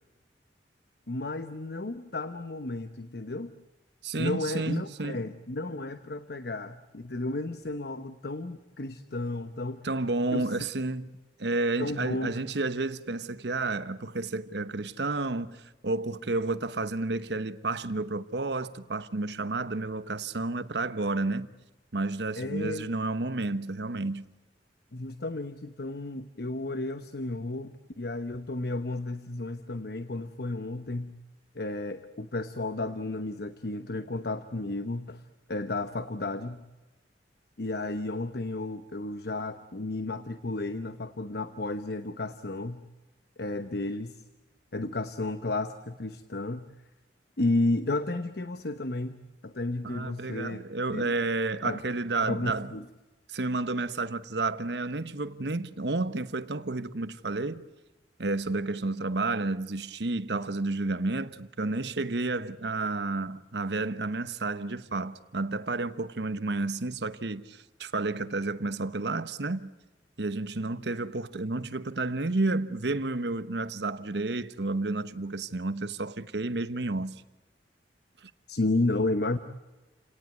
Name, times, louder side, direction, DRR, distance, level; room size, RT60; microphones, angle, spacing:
voice 1, 1.1-3.5 4.2-9.8 10.3-10.6 11.8-12.5 22.4-22.9 24.9-31.1 31.5-36.6 37.6-42.8 43.4-44.3 44.7-46.7 47.4-50.6 50.9-51.1 51.6-51.8 52.2-52.9 78.5-79.4, left 2 dB, 65° left, 1.0 m, -32 dB
voice 2, 4.0-5.2 9.8-11.1 11.4-21.5 21.9-24.3 49.8-52.7 53.3-57.7 58.2-69.7 70.2-77.2 78.2-78.3, right 2 dB, 70° right, 1.1 m, -31 dB
29.0 x 18.0 x 9.4 m
head